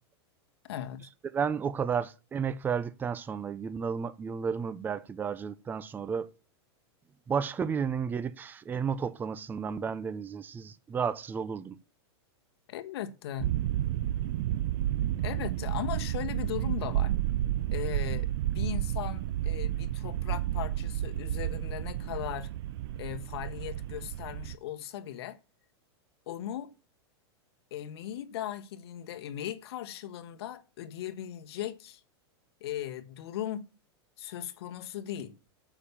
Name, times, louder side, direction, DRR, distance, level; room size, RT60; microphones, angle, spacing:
voice 1, 0.7-1.1 12.7-13.5 15.2-17.1 17.7-22.5 23.0-25.4 26.3-26.7 27.7-32.0 32.6-33.6 34.2-35.3, left 11 dB, 70° left, 1.4 m, -38 dB
voice 2, 1.3-6.3 7.3-11.8, right 6 dB, 15° right, 0.6 m, -32 dB
sound 1, 13.4-24.6, right 13 dB, 65° right, 0.4 m, -31 dB
9.0 x 7.1 x 7.1 m
supercardioid pair, 145°, 14 cm